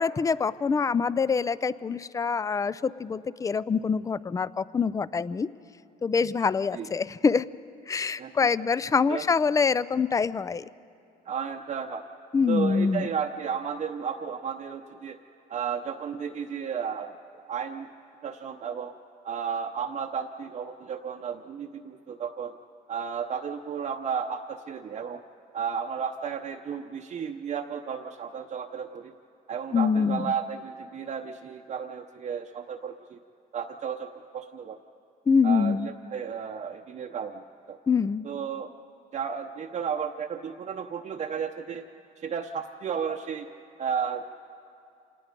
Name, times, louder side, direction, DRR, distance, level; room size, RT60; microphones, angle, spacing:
voice 1, 0.0-5.5 6.0-7.5 7.9-10.6 12.3-13.1 29.7-30.3 35.3-35.9 37.9-38.3, left 5 dB, 20° left, 19 dB, 0.4 m, -25 dB
voice 2, 8.2-8.5 9.1-9.2 11.2-12.0 12.5-15.2 15.5-17.9 18.2-18.9 19.2-22.5 22.9-25.2 25.5-29.1 29.5-33.2 33.5-34.8 35.4-37.8 38.2-38.7 39.1-41.9 42.2-43.5 43.8-44.2, right 7 dB, 40° right, 2 dB, 0.8 m, -33 dB
27.0 x 19.0 x 5.3 m, 2.6 s
cardioid pair, 110°, 17 cm